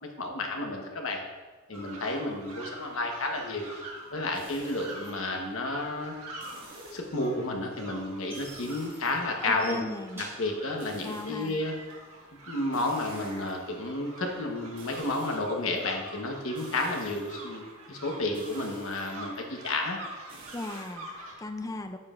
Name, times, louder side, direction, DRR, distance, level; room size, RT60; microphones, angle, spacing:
voice 1, 0.0-1.2 1.7-3.7 4.1-6.1 6.9-9.8 10.2-11.8 12.5-20.0, left 2 dB, 65° left, 2 dB, 1.1 m, -31 dB
sound 1, 1.7-21.3, right 2 dB, 80° right, 1.7 m, -46 dB
sound 2, 4.3-5.1 6.4-7.3 8.3-9.6 10.8-11.9 12.7-13.8 14.7-15.8 16.5-17.5 18.3-19.4 20.3-20.9, right 1 dB, 40° right, 2.1 m, -48 dB
sound 3, 7.3-12.1, right 2 dB, 10° right, 2.3 m, -48 dB
voice 2, 9.4-10.2 11.0-11.6 20.5-22.0, left 2 dB, 15° left, 7 dB, 0.4 m, -37 dB
9.5 x 7.5 x 2.5 m, 1.3 s
head